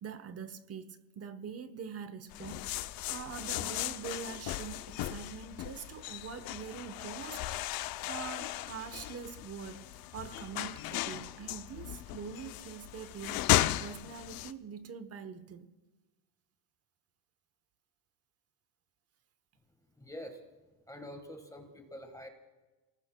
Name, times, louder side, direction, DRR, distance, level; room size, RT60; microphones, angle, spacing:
voice 1, 0.0-7.7 8.1-13.5 13.8-15.7, right 6 dB, 30° right, 0.9 m, -44 dB
sound 1, 2.3-14.5, left 15 dB, 45° left, 0.7 m, -36 dB
voice 2, 19.9-20.4 20.9-22.3, equal, 5° left, 1.5 m, -46 dB
29.5 x 19.0 x 2.2 m
supercardioid pair, 115°, 48 cm